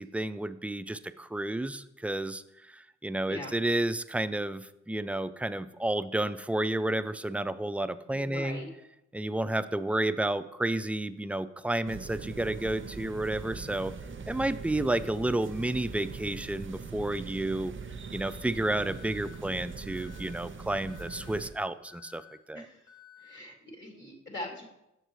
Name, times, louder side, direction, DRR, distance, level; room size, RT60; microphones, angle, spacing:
voice 1, 0.0-8.6 9.1-13.9 14.3-17.7 18.1-22.6, right 1 dB, 5° right, 13 dB, 0.3 m, -31 dB
voice 2, 8.1-8.7 22.5-22.8 23.2-24.6, left 1 dB, 40° left, -2 dB, 2.4 m, -41 dB
sound 1, 11.8-21.5, right 5 dB, 40° right, 0.7 m, -42 dB
Alarm, 18.9-19.4 19.9-20.4 20.9-21.4 21.9-22.4 22.9-23.4, left 10 dB, 75° left, 1.2 m, -54 dB
7.3 x 6.6 x 3.1 m, 0.88 s
supercardioid pair, 40°, 30 cm